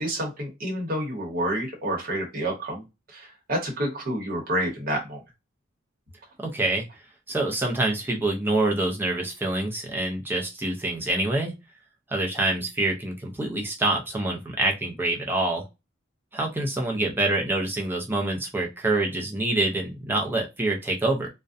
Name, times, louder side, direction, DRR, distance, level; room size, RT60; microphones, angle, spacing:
voice 1, 0.0-2.8 3.1-5.2, right 1 dB, 50° right, -1 dB, 0.9 m, -29 dB
voice 2, 6.4-6.8 7.3-11.5 12.1-15.7 16.3-21.3, right 2 dB, 10° right, 0 dB, 0.5 m, -26 dB
2.5 x 2.1 x 2.4 m, 0.24 s
head